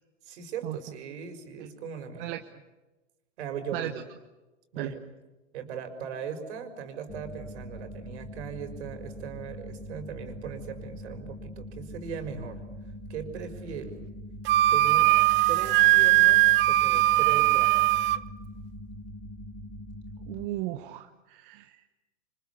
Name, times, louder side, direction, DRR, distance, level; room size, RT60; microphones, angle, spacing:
voice 1, 0.2-2.4 3.4-4.0 4.7-5.0 5.5-12.6 13.1-14.0 14.7-15.1 15.5-17.8, right 7 dB, 65° right, 7 dB, 6.0 m, -39 dB
sound 1, 7.1-20.5, equal, 10° left, 3.9 m, -42 dB
Wind instrument woodwind instrument, 14.5-18.2, right 17 dB, 30° right, 0.8 m, -20 dB
voice 2, 20.3-21.9, right 15 dB, 45° right, 7 dB, 1.4 m, -35 dB
29.0 x 26.0 x 7.2 m, 1.1 s
hypercardioid pair, 125°, 37 cm